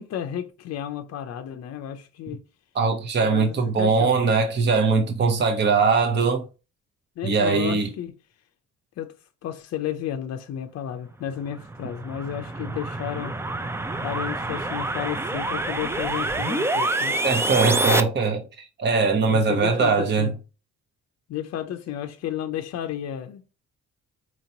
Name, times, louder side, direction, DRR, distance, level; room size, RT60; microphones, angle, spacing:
voice 1, 0.0-2.4 3.2-4.1 7.2-8.2 9.0-9.1 9.4-13.4 14.0-17.2 19.3-20.3 21.3-23.4, left 10 dB, 55° left, 0.5 m, -32 dB
voice 2, 2.7-6.4 7.2-7.9 17.2-18.4 18.8-20.3, right 4 dB, 35° right, 0.8 m, -21 dB
sound 1, 11.5-18.0, right 2 dB, 10° right, 0.3 m, -27 dB
4.3 x 2.9 x 2.7 m
cardioid pair, 90°, 30 cm